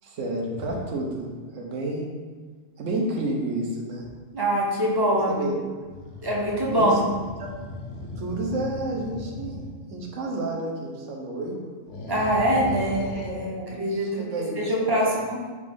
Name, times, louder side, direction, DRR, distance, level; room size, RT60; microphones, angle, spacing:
voice 1, 0.0-2.0 2.8-4.0 5.3-5.5 6.7-7.0 7.4-7.5 8.2-9.5 9.9-11.7 12.9-13.1 13.6-14.7 15.0-15.2, right 2 dB, 75° right, 0 dB, 1.1 m, -30 dB
sound 1, 0.6-0.9 4.0-4.3 5.8-9.7 11.9-13.3, left 2 dB, 70° left, 0.9 m, -38 dB
voice 2, 4.3-5.5 6.2-7.0 12.1-14.3 14.6-15.4, equal, 30° right, -4 dB, 0.5 m, -24 dB
4.9 x 2.6 x 3.5 m, 1.4 s
omnidirectional pair, 1.3 m